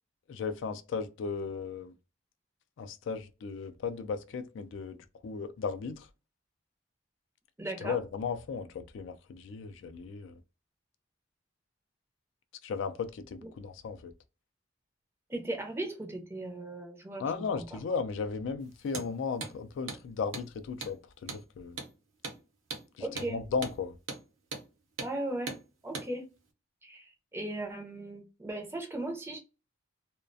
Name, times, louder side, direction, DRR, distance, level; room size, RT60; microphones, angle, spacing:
voice 1, 0.3-1.9 2.8-5.0 5.2-6.1 7.8-10.4 12.6-14.1 17.2-21.8 23.0-23.9, left 5 dB, 70° left, 0.3 m, -36 dB
voice 2, 7.6-8.0 15.3-17.3 17.6-17.7 23.0-23.4 25.0-25.5 25.8-26.3 26.8-29.4, right 2 dB, 10° right, 0.4 m, -37 dB
Hammer, 18.9-19.1 19.4-19.5 19.9-20.0 20.3-20.5 20.8-21.0 21.3-21.4 21.8-21.9 22.2-22.4 22.7-22.9 23.2-23.3 23.6-23.8 24.1-24.2 24.5-24.7 25.0-25.1 25.5-25.6 25.9-26.1, right 3 dB, 80° right, 0.7 m, -39 dB
2.3 x 2.1 x 2.5 m
head